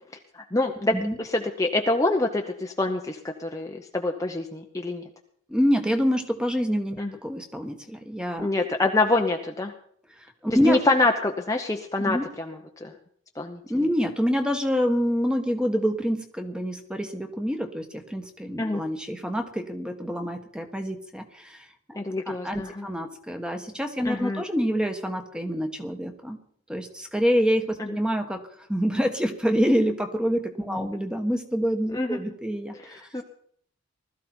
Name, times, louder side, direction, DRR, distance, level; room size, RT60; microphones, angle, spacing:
voice 1, 0.3-5.0 7.0-7.1 8.4-9.7 10.6-12.9 13.4-13.6 18.6-18.8 21.9-22.9 24.0-24.4 27.8-27.9 30.7-30.9 31.9-32.2 32.8-33.2, left 2 dB, 15° left, 2 dB, 0.8 m, -26 dB
voice 2, 5.5-8.5 10.2-10.8 12.0-12.3 13.7-26.4 26.7-28.4 28.7-33.0, equal, 5° right, 6 dB, 1.3 m, -26 dB
20.0 x 13.5 x 4.4 m, 0.63 s
head